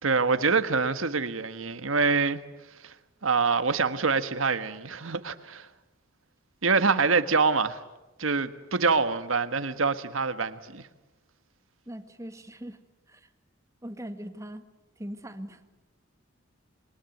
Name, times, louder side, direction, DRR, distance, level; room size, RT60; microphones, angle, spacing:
voice 1, 0.0-2.4 2.8-2.9 3.2-5.7 6.6-7.8 8.2-10.8, right 4 dB, 75° right, 1.5 m, -25 dB
voice 2, 11.8-12.8 13.1-13.3 13.8-14.7 15.0-15.6, equal, 15° right, 1.7 m, -40 dB
27.5 x 22.5 x 9.3 m
head